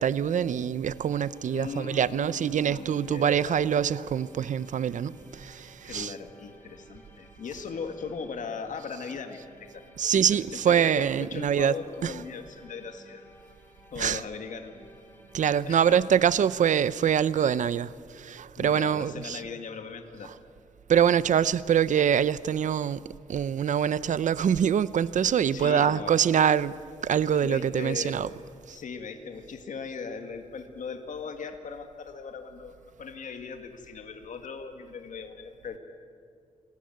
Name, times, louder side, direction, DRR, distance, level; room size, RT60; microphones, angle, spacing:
voice 1, 0.0-6.1 10.0-11.7 12.0-12.1 14.0-14.2 15.3-19.4 20.9-23.0 23.3-26.7 27.0-28.3 28.7-28.8, right 8 dB, 75° right, 0.6 m, -24 dB
sound 1, 0.8-16.2, equal, 15° left, 3.7 m, -55 dB
voice 2, 1.5-3.6 5.8-13.3 13.9-14.9 15.6-16.0 18.6-20.3 25.5-26.1 27.4-28.2 28.7-35.8, left 5 dB, 80° left, 2.0 m, -39 dB
28.0 x 19.5 x 9.3 m
wide cardioid pair, 120°, 13 cm